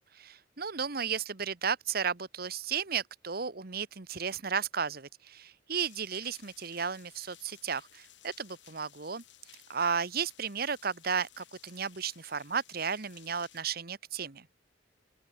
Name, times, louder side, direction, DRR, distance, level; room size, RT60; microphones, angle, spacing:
voice 1, 0.2-9.2 9.7-14.5, right 6 dB, 55° right, 1.2 m, -34 dB
sound 1, 5.8-13.6, left 12 dB, 85° left, 6.7 m, -58 dB
open air
head